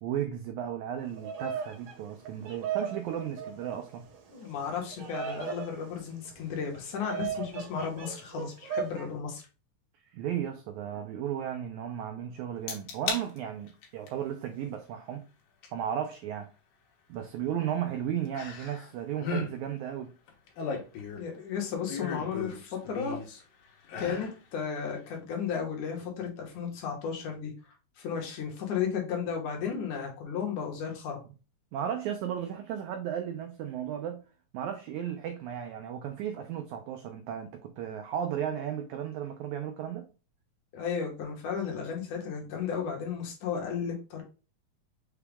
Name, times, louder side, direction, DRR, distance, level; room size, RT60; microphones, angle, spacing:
voice 1, 0.0-4.1 10.1-15.2 15.7-16.5 17.1-20.1 31.7-34.2 34.5-40.1, right 9 dB, 85° right, 1.6 m, -34 dB
Bird vocalization bird call bird song, 1.0-9.1, right 7 dB, 65° right, 1.8 m, -38 dB
voice 2, 4.3-9.4 21.2-23.2 24.0-27.5 28.0-31.2 40.7-44.2, left 7 dB, 70° left, 2.3 m, -34 dB
sound 1, 12.7-13.2 13.7-14.1 15.6-15.7 18.3-18.9 19.2-19.5 20.3-21.4 21.9-23.4 23.8-24.3 24.8-24.9, left 5 dB, 90° left, 2.7 m, -35 dB
5.9 x 2.3 x 3.4 m
omnidirectional pair, 3.9 m